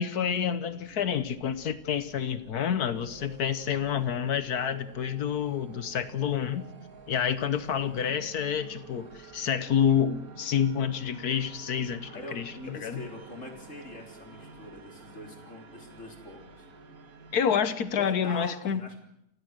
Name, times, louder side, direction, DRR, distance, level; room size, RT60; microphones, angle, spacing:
voice 1, 0.0-6.7 7.1-13.0 17.3-18.8, left 8 dB, 65° left, 13 dB, 1.4 m, -28 dB
sound 1, 0.7-18.0, right 5 dB, 55° right, 2.0 m, -50 dB
voice 2, 12.1-16.6 18.0-19.0, left 1 dB, 45° left, 3 dB, 3.9 m, -43 dB
29.5 x 16.0 x 6.5 m, 0.80 s
omnidirectional pair, 1.8 m